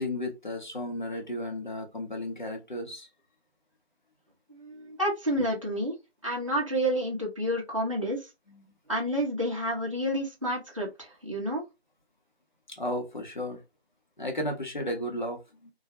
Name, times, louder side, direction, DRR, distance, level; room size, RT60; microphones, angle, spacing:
voice 1, 0.0-3.1 8.5-8.6 12.7-13.6 14.2-15.7, left 1 dB, 45° left, 0.8 m, -34 dB
voice 2, 4.5-5.9 6.2-8.3 8.9-11.6, equal, 30° right, 0.6 m, -29 dB
2.3 x 2.1 x 2.8 m
figure-of-eight pair, 170°, 32 cm